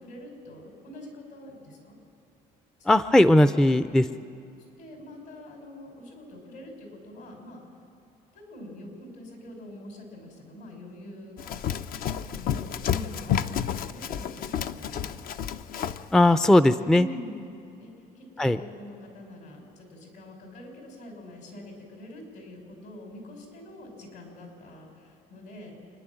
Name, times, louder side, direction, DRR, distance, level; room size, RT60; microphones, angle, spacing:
voice 1, 0.0-2.0 3.9-4.2 4.8-7.6 8.3-11.7 12.3-15.2 16.8-25.7, left 1 dB, 75° left, 1 dB, 6.2 m, -44 dB
voice 2, 2.9-4.0 16.1-17.1 18.4-18.6, left 1 dB, 5° left, 12 dB, 0.4 m, -18 dB
Run, 11.4-16.1, left 9 dB, 60° left, 0.6 m, -30 dB
27.5 x 11.0 x 9.0 m, 2.6 s
cardioid pair, 110°, 17 cm